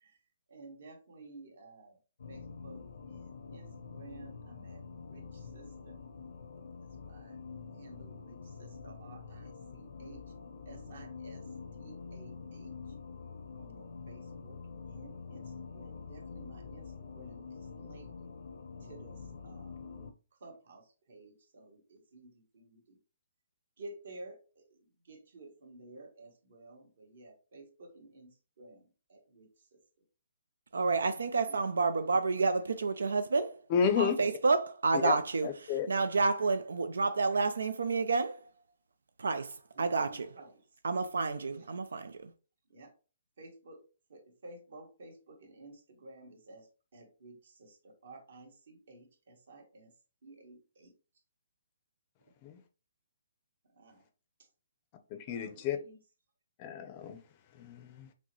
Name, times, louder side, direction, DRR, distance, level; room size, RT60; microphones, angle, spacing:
voice 1, 0.5-1.9 2.3-2.8 3.1-3.7 3.9-4.8 5.1-6.0 7.1-7.4 7.7-10.2 10.7-11.4 11.8-12.7 13.6-14.6 14.9-15.4 15.7-18.1 18.9-19.2 19.4-19.7 20.4-20.8 21.1-21.8 22.1-22.8 23.8-24.4 25.1-28.8 29.1-29.5 39.8-40.5 42.7-42.9 43.4-43.8 44.1-46.6 46.9-47.8 48.0-49.9 50.2-50.9 53.8-54.0 55.3-55.9, right 2 dB, 60° right, 1.5 m, -53 dB
sound 1, 2.2-20.1, left 5 dB, 70° left, 0.6 m, -46 dB
voice 2, 30.7-33.6 34.0-38.5 39.2-40.4 40.8-42.3, right 4 dB, 90° right, 0.4 m, -30 dB
voice 3, 33.7-34.2 35.0-35.1 35.4-35.9 52.4-52.6 55.1-55.8 56.6-57.2 57.6-58.1, left 6 dB, 30° left, 0.5 m, -31 dB
6.0 x 2.1 x 3.0 m
hypercardioid pair, 160°, 0 cm